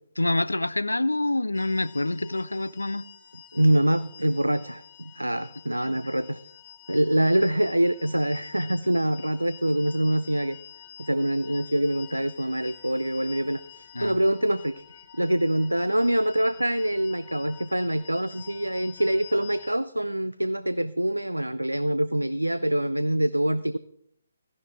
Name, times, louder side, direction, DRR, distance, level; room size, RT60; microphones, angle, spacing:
voice 1, 0.2-3.0 5.8-6.0 13.9-14.2, left 2 dB, 80° left, 0.5 m, -27 dB
sound 1, 1.5-19.8, left 10 dB, 30° left, 1.0 m, -48 dB
voice 2, 3.5-6.4 6.9-10.6 11.0-14.8 15.1-23.8, right 1 dB, 90° right, 0.4 m, -25 dB
14.0 x 11.0 x 3.6 m
figure-of-eight pair, 140°, 0 cm